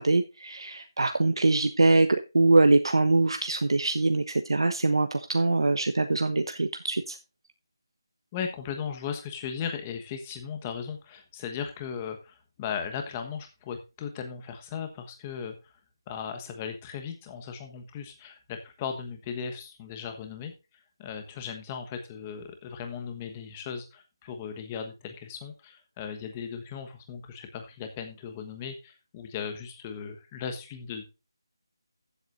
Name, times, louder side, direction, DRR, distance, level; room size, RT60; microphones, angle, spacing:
voice 1, 0.0-7.2, right 2 dB, 85° right, 8 dB, 1.1 m, -23 dB
voice 2, 8.3-15.7 16.1-20.5 21.0-31.1, left 7 dB, 15° left, 6 dB, 1.3 m, -37 dB
15.0 x 8.0 x 2.6 m, 0.28 s
figure-of-eight pair, 170°, 2 cm